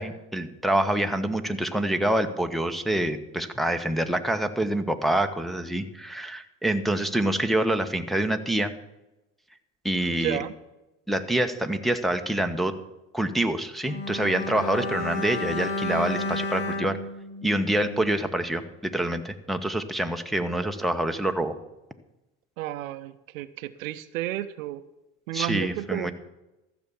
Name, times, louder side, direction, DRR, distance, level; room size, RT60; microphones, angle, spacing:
voice 1, 0.0-8.7 9.8-10.4 11.1-12.7 13.1-17.0 17.4-21.5 25.3-26.1, right 1 dB, ahead, 5 dB, 1.1 m, -26 dB
voice 2, 10.1-10.5 22.6-24.8 25.3-26.1, right 14 dB, 80° right, 13 dB, 0.7 m, -32 dB
Bowed string instrument, 13.8-18.3 18.5-18.7, left 2 dB, 60° left, 2.0 m, -32 dB
14.0 x 7.0 x 7.1 m, 0.99 s
hypercardioid pair, 70°, 40 cm